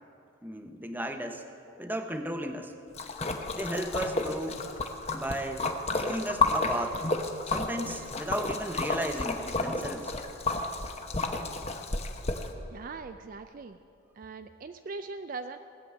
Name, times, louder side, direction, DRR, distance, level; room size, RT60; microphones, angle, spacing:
voice 1, 0.4-1.4 1.8-2.8 3.5-4.7 5.1-7.0 7.5-10.1, right 1 dB, 10° right, 6 dB, 0.7 m, -35 dB
Splash splatter, 3.0-12.5, left 3 dB, 30° left, 0.8 m, -31 dB
voice 2, 12.7-13.8 14.2-15.6, right 4 dB, 40° right, 9 dB, 0.3 m, -40 dB
17.5 x 6.9 x 8.8 m, 2.6 s
head